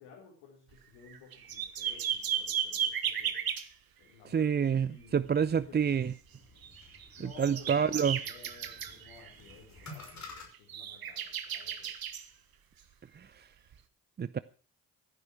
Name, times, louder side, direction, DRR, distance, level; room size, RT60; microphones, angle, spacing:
voice 1, 0.0-3.4 4.0-6.1 7.2-11.9, left 5 dB, 70° left, 4.5 m, -55 dB
sound 1, 0.7-0.8 1.1-3.7 6.6-9.5 9.8-10.1 10.5-12.3 13.7-13.8, right 8 dB, 50° right, 1.7 m, -35 dB
voice 2, 4.2-6.1 7.2-8.2 13.2-13.5 14.2-14.4, right 7 dB, 20° right, 0.6 m, -28 dB
sound 2, 5.1-10.5, left 2 dB, 35° left, 5.9 m, -52 dB
14.5 x 10.0 x 5.9 m
hypercardioid pair, 45°, 46 cm